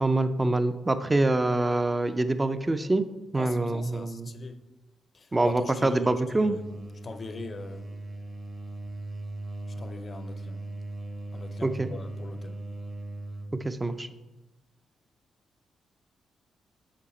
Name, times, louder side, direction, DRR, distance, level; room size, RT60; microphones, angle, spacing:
voice 1, 0.0-3.1 3.3-4.3 5.3-6.6 11.6-11.9 13.6-14.1, right 2 dB, 20° right, 0.5 m, -25 dB
voice 2, 3.3-4.6 5.1-6.7 7.0-7.9 9.7-10.6 11.3-12.6, left 3 dB, 40° left, 0.6 m, -41 dB
sound 1, 5.8-13.6, right 2 dB, 35° right, 1.3 m, -39 dB
7.4 x 6.3 x 4.2 m
cardioid pair, 85°, 0 cm